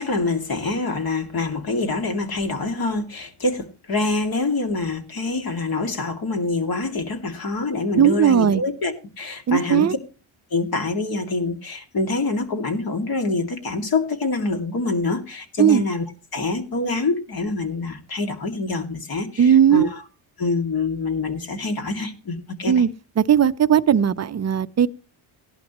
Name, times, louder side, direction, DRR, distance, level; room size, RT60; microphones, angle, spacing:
voice 1, 0.0-10.0 10.5-16.0 16.3-20.0 20.4-22.8, left 3 dB, 45° left, 2.4 m, -25 dB
voice 2, 7.9-8.6 9.5-9.9 15.6-15.8 19.4-19.9 22.7-22.9 23.2-24.9, right 9 dB, 35° right, 0.7 m, -17 dB
16.5 x 11.5 x 3.0 m
cardioid pair, 95°, 49 cm